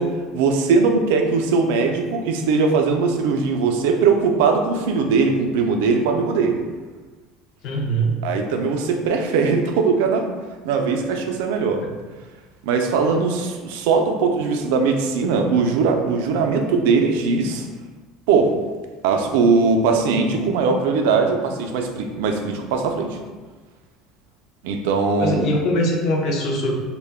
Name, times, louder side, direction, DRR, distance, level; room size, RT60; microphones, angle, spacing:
voice 1, 0.0-6.6 8.2-10.3 10.6-11.8 12.6-17.6 18.3-18.5 19.0-23.2 24.6-25.5, right 4 dB, 85° right, 4 dB, 0.3 m, -20 dB
voice 2, 7.6-8.2 25.2-26.7, equal, 45° left, 1 dB, 0.4 m, -22 dB
2.1 x 2.1 x 3.3 m, 1.3 s
cardioid pair, 165°, 0 cm